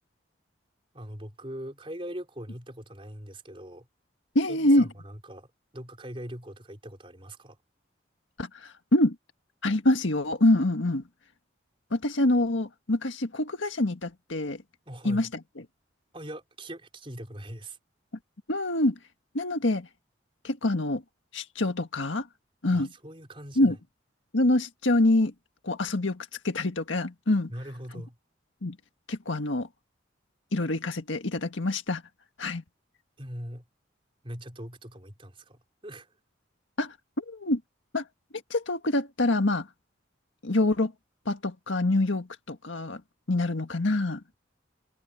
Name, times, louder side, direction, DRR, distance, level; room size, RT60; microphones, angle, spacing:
voice 1, 0.9-3.9 4.5-5.5 5.7-7.6 14.9-15.3 16.1-17.8 22.7-23.7 27.5-28.2 33.2-33.6 34.2-36.1, equal, 25° right, 4.7 m, -41 dB
voice 2, 4.3-4.9 8.4-9.1 9.6-11.0 11.9-14.6 15.0-15.3 18.5-19.0 19.3-19.9 20.4-21.0 21.3-22.3 22.6-22.9 23.6-23.8 24.3-25.3 25.6-27.5 28.6-28.7 29.1-29.7 30.5-32.0 32.4-32.6 36.8-37.6 37.9-38.0 38.5-39.7 40.4-40.9 41.2-43.0 43.3-44.2, left 1 dB, 80° left, 1.7 m, -25 dB
head